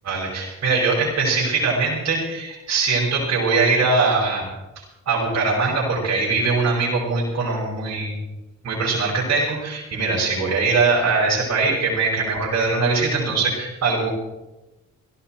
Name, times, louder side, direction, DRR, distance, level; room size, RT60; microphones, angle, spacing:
voice 1, 0.0-4.5 4.8-8.2 8.6-14.1, right 3 dB, 60° right, -5 dB, 5.8 m, -21 dB
17.5 x 16.0 x 4.5 m, 0.99 s
cardioid pair, 90°, 30 cm